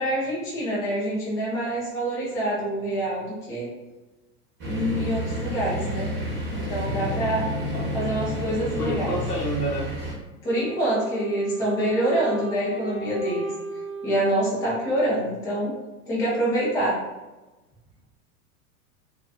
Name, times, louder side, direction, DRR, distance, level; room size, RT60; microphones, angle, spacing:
voice 1, 0.0-3.7 4.7-6.1 6.5-7.5 7.9-9.1 10.4-13.5 14.0-15.7 16.1-17.0, right 1 dB, 10° left, -6 dB, 0.3 m, -26 dB
sound 1, 4.6-10.1, equal, 25° right, 0.8 m, -30 dB
voice 2, 8.8-9.9, right 1 dB, 85° left, -3 dB, 0.8 m, -29 dB
Wind instrument woodwind instrument, 10.4-15.5, right 3 dB, 85° right, 0.7 m, -35 dB
2.4 x 2.3 x 2.3 m, 1.1 s
figure-of-eight pair, 95°, 45 cm